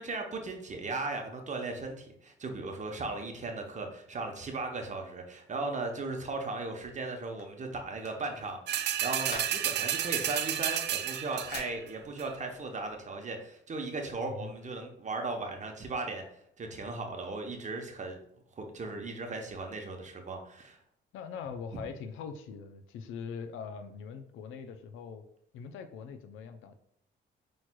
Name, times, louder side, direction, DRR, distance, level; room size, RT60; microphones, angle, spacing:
voice 1, 0.0-16.2 16.6-18.2 18.6-20.8, right 3 dB, 35° right, 3 dB, 0.8 m, -37 dB
sound 1, 7.4-9.9 10.2-11.0 11.2-11.7, left 3 dB, 55° left, 1.3 m, -46 dB
sound 2, 8.7-11.7 12.2-12.3, right 10 dB, 60° right, 0.4 m, -31 dB
voice 2, 21.1-25.2 25.5-26.7, left 6 dB, 85° left, 9 dB, 0.5 m, -42 dB
5.9 x 3.1 x 2.2 m, 0.72 s
cardioid pair, 90°, 20 cm